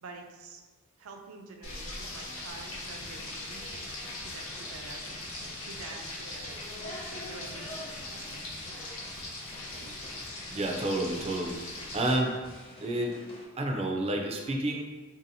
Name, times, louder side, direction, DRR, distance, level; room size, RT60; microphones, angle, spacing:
voice 1, 0.0-0.6 1.0-5.0 5.6-6.6 7.1-8.3, right 3 dB, 85° right, 3 dB, 0.5 m, -48 dB
Frying (food), 1.6-12.2, left 2 dB, 85° left, 0.9 m, -40 dB
sound 1, 2.5-13.5, left 1 dB, 25° left, 0.6 m, -51 dB
voice 2, 10.5-12.4 12.8-13.2 13.6-14.8, right 1 dB, 30° right, 2 dB, 0.4 m, -30 dB
3.7 x 2.7 x 2.6 m, 1.3 s
head